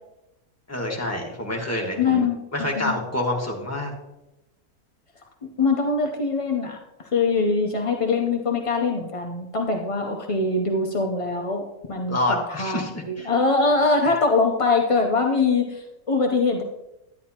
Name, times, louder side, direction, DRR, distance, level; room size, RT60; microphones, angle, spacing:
voice 1, 0.7-3.9 12.1-13.3, left 1 dB, 10° left, -1 dB, 1.4 m, -27 dB
voice 2, 2.0-2.4 2.8-2.9 5.6-16.6, left 4 dB, 50° left, 1 dB, 0.4 m, -23 dB
10.5 x 9.9 x 2.9 m, 0.93 s
omnidirectional pair, 1.6 m